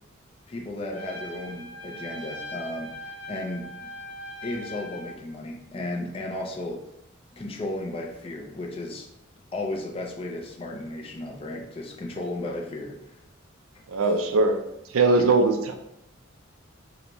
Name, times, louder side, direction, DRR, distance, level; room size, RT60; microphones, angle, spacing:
voice 1, 0.5-3.9 4.4-6.9 7.3-9.1 9.5-13.1, left 2 dB, 25° left, -1 dB, 0.4 m, -34 dB
Trumpet, 0.9-5.2, equal, 80° left, 1.2 m, -40 dB
voice 2, 13.9-14.6 14.9-15.7, right 3 dB, 85° right, 6 dB, 0.4 m, -20 dB
3.9 x 2.2 x 2.9 m, 0.83 s
head